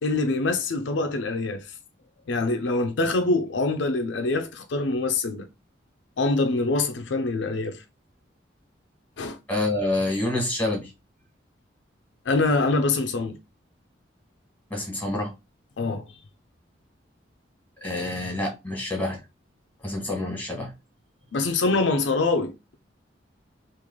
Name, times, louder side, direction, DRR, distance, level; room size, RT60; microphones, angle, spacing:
voice 1, 0.0-1.7 2.3-5.5 6.2-7.8 9.2-9.4 12.3-13.4 15.8-16.1 21.3-22.8, left 3 dB, 75° left, 0.5 m, -24 dB
voice 2, 9.5-10.9 14.7-15.3 17.8-19.2 19.8-20.7, left 2 dB, 10° left, 1.4 m, -27 dB
3.1 x 2.5 x 3.7 m
head